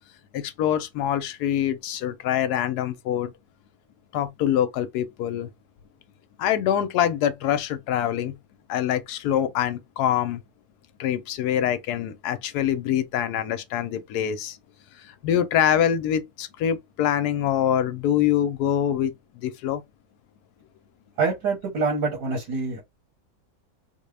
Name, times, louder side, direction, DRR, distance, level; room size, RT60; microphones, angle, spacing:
voice 1, 0.3-3.3 4.1-5.5 6.4-8.3 8.7-10.4 11.0-14.6 15.0-19.8, left 10 dB, 75° left, 1.1 m, -25 dB
voice 2, 21.2-22.8, right 4 dB, 85° right, 1.8 m, -25 dB
3.7 x 2.2 x 3.2 m
omnidirectional pair, 1.7 m